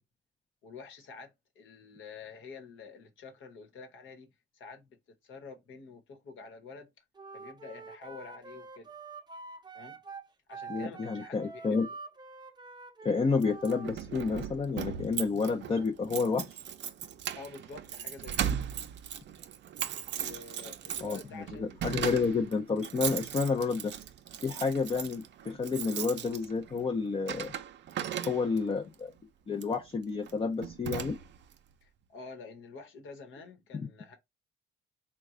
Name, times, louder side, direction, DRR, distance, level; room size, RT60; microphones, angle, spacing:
voice 1, 0.6-6.9 7.3-8.9 9.7-10.0 10.5-11.8 17.3-18.6 20.1-22.1 31.8-34.2, left 4 dB, 75° left, 1.1 m, -48 dB
Wind instrument woodwind instrument, 7.1-13.9, right 4 dB, 20° right, 0.6 m, -46 dB
voice 2, 10.7-11.9 13.0-16.6 21.0-23.9 24.4-27.5 28.2-29.1 29.5-31.2 33.7-33.9, left 4 dB, 25° left, 0.5 m, -30 dB
Keys jangling, 13.4-28.8 29.5-29.8 30.3-30.4 30.6-31.5, right 10 dB, 65° right, 0.5 m, -38 dB
3.1 x 2.3 x 3.6 m
cardioid pair, 90°, 20 cm